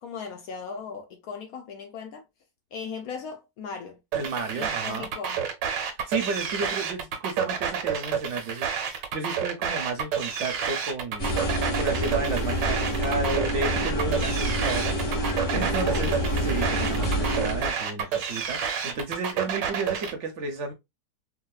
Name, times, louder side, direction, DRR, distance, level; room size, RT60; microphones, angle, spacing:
voice 1, 0.0-2.2 2.7-4.0 4.5-5.4 15.5-16.4 17.9-18.3, left 6 dB, 70° left, 0.9 m, -38 dB
voice 2, 4.1-5.1 6.1-11.3 11.8-15.0 15.5-16.1 16.4-20.7, right 3 dB, 55° right, 0.8 m, -32 dB
sound 1, 4.1-20.1, right 7 dB, 85° right, 1.4 m, -29 dB
sound 2, 11.2-17.7, equal, 35° left, 1.7 m, -27 dB
3.9 x 2.1 x 2.3 m
omnidirectional pair, 1.9 m